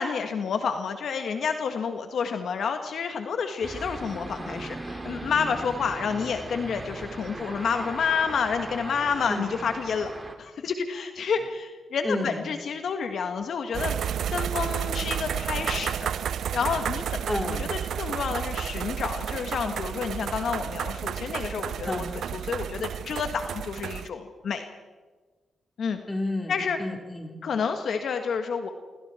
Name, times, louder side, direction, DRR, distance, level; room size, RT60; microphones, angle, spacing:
voice 1, 0.0-10.1 10.4-13.9 14.3-16.1 16.5-24.7 25.8-26.0 26.5-26.8 27.4-28.7, left 6 dB, 70° left, 6 dB, 1.6 m, -29 dB
sound 1, 3.6-10.4, right 2 dB, 30° right, 3.3 m, -38 dB
voice 2, 12.0-12.4 17.3-17.7 21.9-22.1 26.1-26.5 26.8-27.4, left 1 dB, 20° left, 3 dB, 4.2 m, -30 dB
sound 2, 13.7-24.1, right 9 dB, 75° right, 0.6 m, -31 dB
27.0 x 25.0 x 4.5 m, 1.3 s
supercardioid pair, 50°, 0 cm